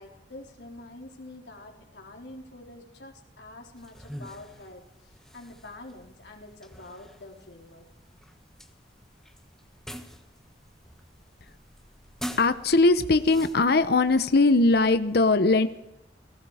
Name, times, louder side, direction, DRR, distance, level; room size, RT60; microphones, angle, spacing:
voice 1, 0.0-7.9, left 2 dB, 80° left, 1 dB, 4.1 m, -46 dB
sound 1, 3.8-14.9, equal, 5° left, 1.3 m, -46 dB
voice 2, 12.4-15.7, left 3 dB, 60° left, 11 dB, 0.9 m, -20 dB
29.0 x 19.0 x 5.0 m, 0.87 s
head